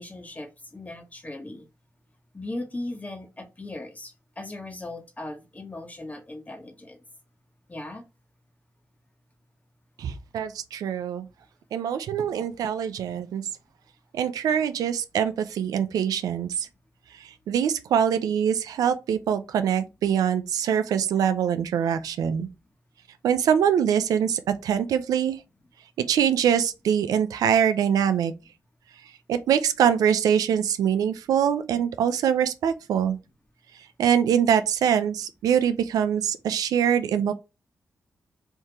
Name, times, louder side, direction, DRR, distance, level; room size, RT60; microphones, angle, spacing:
voice 1, 0.0-1.7 2.3-7.0 7.7-8.0, left 2 dB, 25° left, 1.4 m, -38 dB
voice 2, 10.0-11.2 11.7-13.4 14.1-16.7 17.5-22.5 23.2-25.4 26.1-28.3 29.3-33.2 34.0-37.3, right 8 dB, 85° right, 0.5 m, -23 dB
3.6 x 2.7 x 4.5 m
cardioid pair, 55°, 6 cm